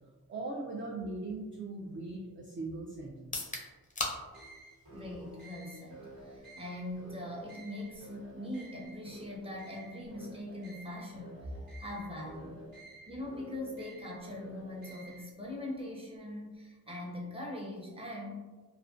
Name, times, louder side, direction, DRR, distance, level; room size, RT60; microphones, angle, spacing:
voice 1, 0.3-3.6, right 2 dB, 35° right, -2 dB, 0.4 m, -40 dB
sound 1, 3.2-17.0, left 2 dB, 20° left, 0.5 m, -48 dB
sound 2, 4.3-15.2, right 2 dB, 70° right, 1.4 m, -51 dB
voice 2, 4.9-11.4 11.8-12.6 13.1-18.4, left 1 dB, 15° right, -3 dB, 0.8 m, -42 dB
2.4 x 2.1 x 2.4 m, 1.3 s
cardioid pair, 45°, 38 cm